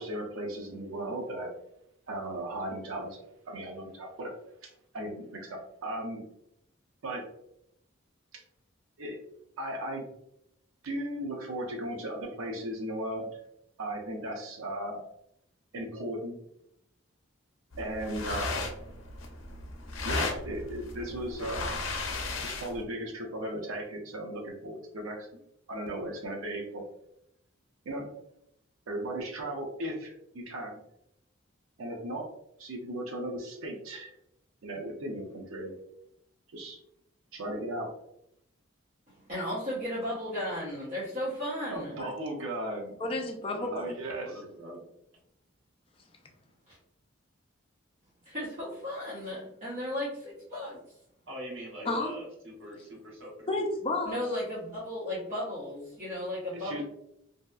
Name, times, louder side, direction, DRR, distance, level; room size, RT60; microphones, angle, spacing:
voice 1, 0.0-1.5 2.1-4.3 4.6-6.2 7.0-7.2 8.3-8.4 9.0-9.2 9.6-10.1 10.8-13.3 13.8-15.0 15.7-16.3 17.8-18.7 20.0-21.8 22.4-25.4 25.7-26.8 27.8-28.1 28.9-30.7 31.8-32.3 32.6-34.1 34.6-35.7 36.5-36.8 37.3-37.9 41.7-43.0 43.7-44.4 51.8-51.9 56.5-56.8, right 1 dB, 85° right, 1 dB, 0.5 m, -36 dB
sound 1, 17.7-22.8, left 3 dB, 80° left, 0.5 m, -35 dB
voice 2, 39.1-42.0 48.2-50.8 54.0-56.8, left 1 dB, 40° right, -9 dB, 0.7 m, -35 dB
voice 3, 43.0-43.8 51.9-52.1 53.5-54.2, left 2 dB, 25° left, 2 dB, 0.4 m, -31 dB
voice 4, 44.2-44.8 51.3-53.5, right 1 dB, 70° right, -4 dB, 1.1 m, -43 dB
2.7 x 2.3 x 2.2 m, 0.77 s
head